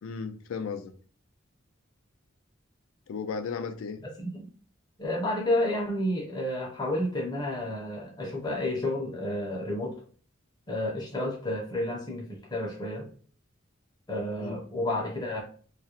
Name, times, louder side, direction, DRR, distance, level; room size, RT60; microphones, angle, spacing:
voice 1, 0.0-0.9 3.1-4.0 14.4-14.6, left 5 dB, 75° left, 0.3 m, -35 dB
voice 2, 4.2-4.5 5.0-10.0 10.7-13.1 14.1-15.4, left 1 dB, 20° left, 0.5 m, -31 dB
2.3 x 2.0 x 2.8 m
head